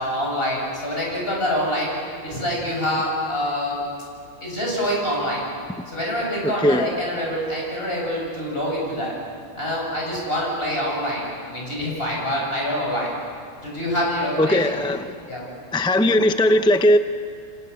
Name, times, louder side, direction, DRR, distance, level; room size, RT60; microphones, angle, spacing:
voice 1, 0.0-2.0 2.2-3.8 4.4-5.4 5.9-9.2 9.6-13.1 13.6-14.8 15.3-15.4, equal, 45° left, -3 dB, 7.5 m, -25 dB
voice 2, 14.4-15.1 15.7-17.0, left 1 dB, 5° left, 9 dB, 0.3 m, -18 dB
29.5 x 25.0 x 7.0 m, 2.3 s
omnidirectional pair, 1.4 m